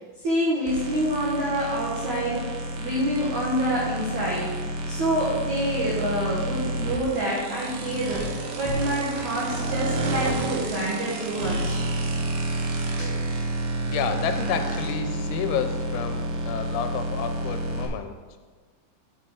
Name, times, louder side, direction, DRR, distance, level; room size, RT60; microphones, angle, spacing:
voice 1, 0.2-2.5 2.8-8.2 8.5-11.8 13.0-13.2, right 1 dB, 70° right, -6 dB, 1.8 m, -27 dB
sound 1, 0.7-17.9, right 1 dB, 90° right, 1.9 m, -30 dB
voice 2, 13.8-18.2, left 8 dB, 90° left, 7 dB, 3.0 m, -30 dB
8.3 x 4.3 x 6.9 m, 1.4 s
omnidirectional pair, 5.4 m